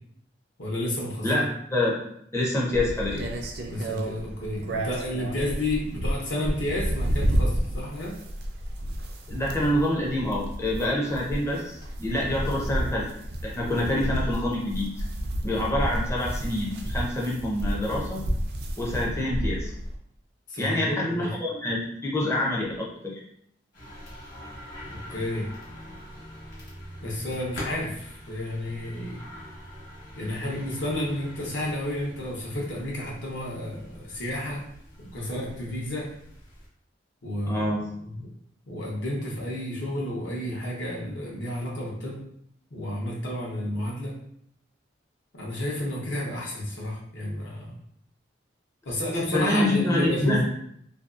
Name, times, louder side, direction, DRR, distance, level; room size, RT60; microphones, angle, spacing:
voice 1, 0.6-1.3 3.7-8.2 13.5-13.7 20.5-21.3 24.9-25.5 25.8-25.9 27.0-29.2 30.2-34.6 35.0-36.1 37.2-37.7 38.0-38.1 38.7-42.2 42.7-44.1 45.3-47.8 48.9-50.4, left 1 dB, 75° left, -4 dB, 0.8 m, -31 dB
voice 2, 1.2-2.0 2.3-3.2 9.3-13.1 13.4-15.0 15.4-18.2 18.8-19.7 20.6-23.2 37.5-37.8 49.3-50.4, left 1 dB, 15° left, -4 dB, 0.4 m, -26 dB
sound 1, 2.7-20.0, right 1 dB, 60° right, 0.4 m, -31 dB
sound 2, 23.7-36.7, equal, 50° left, 1.0 m, -44 dB
2.6 x 2.3 x 2.4 m, 0.69 s
head